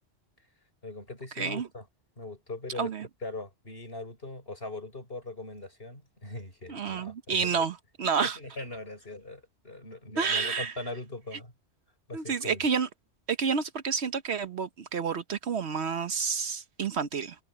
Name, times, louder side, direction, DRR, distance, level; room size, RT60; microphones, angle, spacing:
voice 1, 0.8-1.9 2.2-2.9 3.2-7.7 8.0-11.5 12.1-12.7, left 2 dB, 50° left, 7.0 m, -40 dB
voice 2, 1.4-1.7 2.8-3.1 6.7-8.4 10.2-10.7 12.1-12.9 13.3-17.4, right 6 dB, 65° right, 1.2 m, -29 dB
omnidirectional pair, 1.2 m